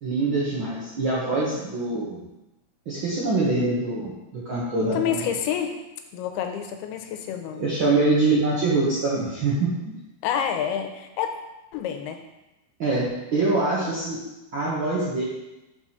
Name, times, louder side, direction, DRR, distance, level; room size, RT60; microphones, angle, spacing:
voice 1, 0.0-2.2 2.8-5.2 7.6-10.0 12.8-14.2 14.5-15.2, right 2 dB, 80° right, -8 dB, 1.1 m, -24 dB
voice 2, 4.9-5.8 6.1-7.6 10.2-11.3 11.7-12.2, left 8 dB, 90° left, 5 dB, 2.7 m, -28 dB
6.0 x 4.7 x 5.7 m, 0.97 s
omnidirectional pair, 4.4 m